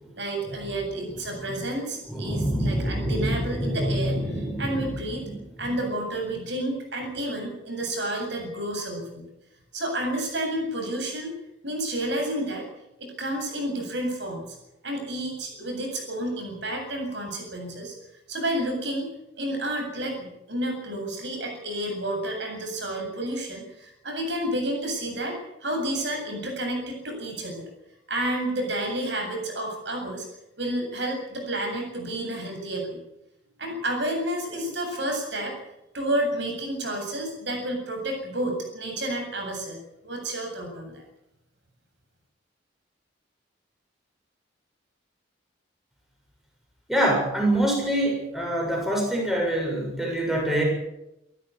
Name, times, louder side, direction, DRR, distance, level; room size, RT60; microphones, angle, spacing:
voice 1, 0.2-5.2 5.6-9.2 9.7-11.3 11.6-12.7 13.0-14.6 14.8-17.9 18.3-19.1 19.4-25.4 25.6-27.7 28.1-30.3 30.6-33.0 33.6-35.6 35.9-41.0, right 1 dB, 65° right, 3 dB, 7.9 m, -30 dB
voice 2, 2.1-4.8 46.9-50.6, right 1 dB, ahead, -1 dB, 7.1 m, -25 dB
28.5 x 13.0 x 8.6 m, 0.87 s
head